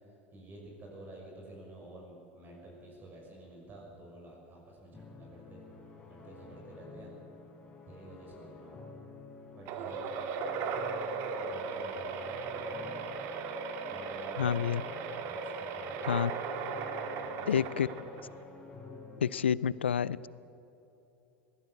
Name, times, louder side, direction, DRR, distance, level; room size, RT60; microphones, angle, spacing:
voice 1, 0.3-5.7 6.1-7.1 7.9-8.8 9.5-10.1 11.4-12.7 13.9-14.7 15.2-16.2 17.2-18.0, right 1 dB, 30° right, -1 dB, 6.1 m, -50 dB
sound 1, 4.9-19.4, left 3 dB, 20° left, 5.3 m, -51 dB
sound 2, 9.7-18.4, right 5 dB, 50° right, 1.9 m, -37 dB
voice 2, 14.4-14.8 16.0-16.3 17.5-17.9 19.2-20.3, left 8 dB, 80° left, 21 dB, 0.4 m, -28 dB
21.0 x 16.0 x 8.3 m, 3.0 s
figure-of-eight pair, 80°, 6 cm